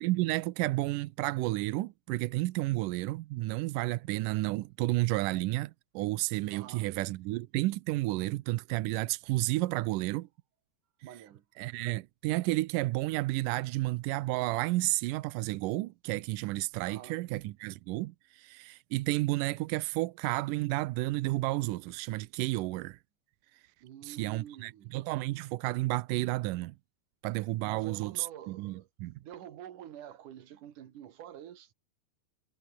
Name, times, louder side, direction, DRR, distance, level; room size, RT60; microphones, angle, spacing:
voice 1, 0.0-10.3 11.6-23.0 24.0-26.8 27.2-29.1, right 19 dB, 85° right, 1.9 m, -31 dB
voice 2, 6.5-6.9 11.0-11.4 16.8-17.2 23.8-24.9 27.6-28.9 29.2-31.7, right 10 dB, 60° right, 3.0 m, -48 dB
omnidirectional pair, 4.6 m